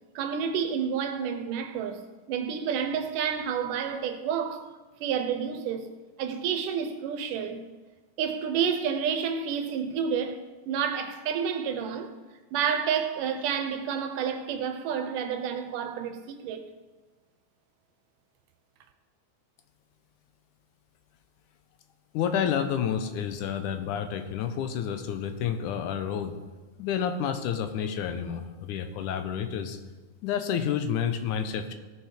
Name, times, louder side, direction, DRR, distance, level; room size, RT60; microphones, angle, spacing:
voice 1, 0.2-2.0 2.3-4.6 5.0-5.9 6.2-7.6 8.2-12.1 12.5-16.7, right 7 dB, 85° right, 2.5 m, -29 dB
voice 2, 22.1-26.4 26.8-29.8 30.2-31.7, left 8 dB, 80° left, 2.3 m, -29 dB
17.5 x 6.5 x 4.9 m
omnidirectional pair, 3.7 m